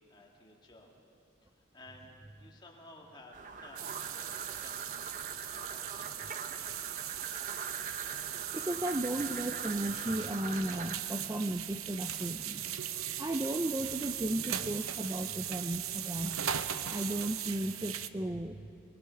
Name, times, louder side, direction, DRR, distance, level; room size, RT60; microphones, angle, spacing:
voice 1, 0.1-0.9 1.4-2.1 2.4-5.1 5.5-6.6, left 1 dB, 20° left, -1 dB, 2.1 m, -55 dB
sound 1, 3.3-11.0, right 5 dB, 35° right, 0.8 m, -43 dB
sound 2, 3.8-18.1, right 10 dB, 80° right, 0.7 m, -38 dB
voice 2, 8.5-12.7 13.2-16.4 16.9-18.7, right 1 dB, 15° right, 6 dB, 0.4 m, -35 dB
24.0 x 20.5 x 5.8 m, 2.8 s
head